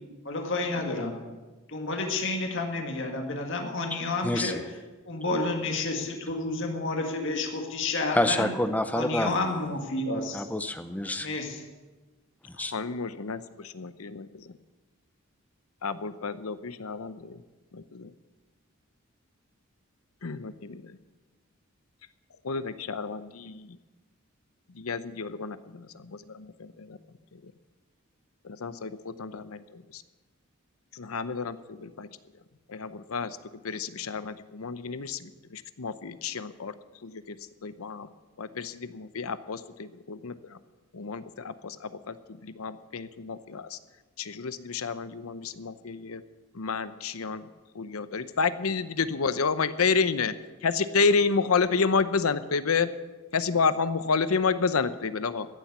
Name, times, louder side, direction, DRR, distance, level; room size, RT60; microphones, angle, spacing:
voice 1, 0.3-1.2 1.7-4.6 5.1-8.5 8.9-10.5 11.2-11.7, left 2 dB, 60° left, 3 dB, 1.9 m, -30 dB
voice 2, 4.2-4.6 8.1-9.3 10.3-11.3 12.5-12.7, left 1 dB, 5° left, 10 dB, 0.6 m, -28 dB
voice 3, 12.7-14.5 15.8-17.4 17.7-18.1 20.2-21.0 22.4-23.8 24.7-27.0 27.3-27.5 28.4-30.0 30.9-32.1 32.7-33.4 33.6-36.7 37.0-37.4 37.6-38.1 38.4-40.6 40.9-42.2 42.4-43.8 44.2-46.2 46.5-47.5 47.7-50.3 50.6-52.9 53.3-55.5, left 5 dB, 85° left, 13 dB, 0.7 m, -30 dB
15.0 x 7.3 x 8.2 m, 1.2 s
head